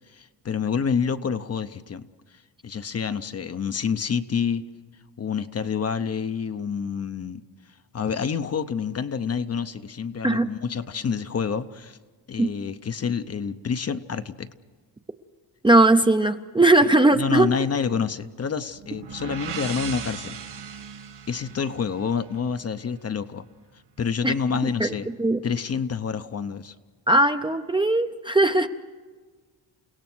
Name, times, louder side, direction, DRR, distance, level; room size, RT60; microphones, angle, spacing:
voice 1, 0.1-2.1 2.6-4.6 5.2-7.4 7.9-12.0 12.3-14.5 17.1-20.4 21.3-23.5 24.0-25.1 25.4-26.7, left 6 dB, 35° left, 10 dB, 0.7 m, -28 dB
voice 2, 15.6-17.5 24.2-24.3 24.8-24.9 25.2-25.4 27.1-28.7, right 2 dB, 10° right, 7 dB, 0.6 m, -19 dB
sound 1, 18.8-22.6, right 7 dB, 65° right, 2.3 m, -37 dB
29.5 x 17.0 x 6.2 m, 1.4 s
cardioid pair, 120°, 44 cm